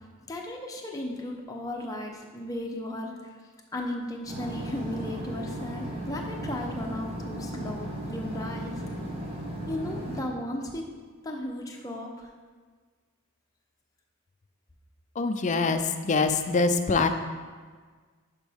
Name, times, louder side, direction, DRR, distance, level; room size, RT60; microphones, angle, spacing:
voice 1, 0.3-3.2 3.7-8.7 9.7-10.8 11.2-12.3, left 1 dB, 15° left, 0 dB, 0.8 m, -35 dB
sound 1, 4.3-10.2, right 1 dB, 30° right, 1.5 m, -36 dB
voice 2, 15.2-17.1, left 4 dB, 35° left, 8 dB, 0.4 m, -24 dB
11.0 x 5.2 x 3.6 m, 1.5 s
head